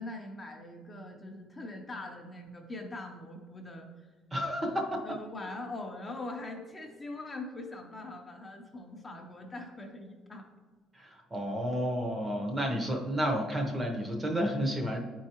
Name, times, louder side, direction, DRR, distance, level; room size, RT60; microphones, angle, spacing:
voice 1, 0.0-4.1 5.0-10.5, left 2 dB, 20° left, 1 dB, 0.6 m, -42 dB
voice 2, 4.3-5.0 11.0-15.0, equal, 15° right, 2 dB, 0.8 m, -31 dB
9.5 x 4.6 x 2.9 m, 1.3 s
cardioid pair, 150°, 0 cm